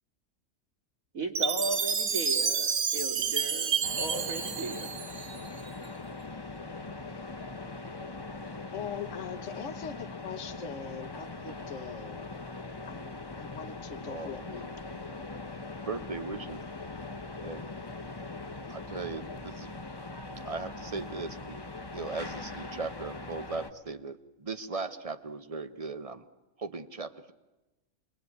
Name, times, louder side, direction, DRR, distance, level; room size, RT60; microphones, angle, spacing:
voice 1, 1.1-4.9, right 2 dB, 85° right, 3 dB, 3.0 m, -36 dB
Chime, 1.4-5.6, right 6 dB, 60° right, 1.4 m, -30 dB
sound 1, 3.8-23.7, left 3 dB, 20° left, 1.0 m, -41 dB
voice 2, 8.7-12.3 12.8-14.7, left 7 dB, 65° left, 7 dB, 1.5 m, -41 dB
voice 3, 14.0-14.7 15.5-16.6 17.4-17.7 18.7-19.8 20.4-21.6 21.9-26.3 26.6-27.3, right 4 dB, 30° right, 11 dB, 0.9 m, -38 dB
27.0 x 21.5 x 9.6 m, 1.1 s
omnidirectional pair, 1.4 m